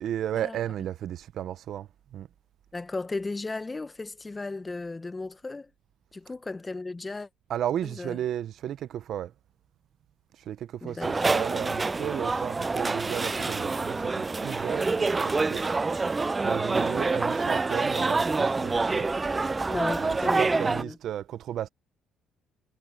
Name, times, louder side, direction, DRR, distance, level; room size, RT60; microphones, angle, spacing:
voice 1, 0.0-2.3 7.5-9.3 10.4-15.6 16.4-19.1 20.0-21.7, right 11 dB, 65° right, 1.0 m, -34 dB
voice 2, 2.7-5.7 6.1-7.3 7.8-8.2 10.8-11.3 19.6-21.0, left 3 dB, 25° left, 1.3 m, -35 dB
sound 1, 10.9-20.4, equal, 5° right, 1.4 m, -55 dB
sound 2, 11.0-20.8, right 3 dB, 25° right, 0.5 m, -27 dB
supercardioid pair, 65°, 0 cm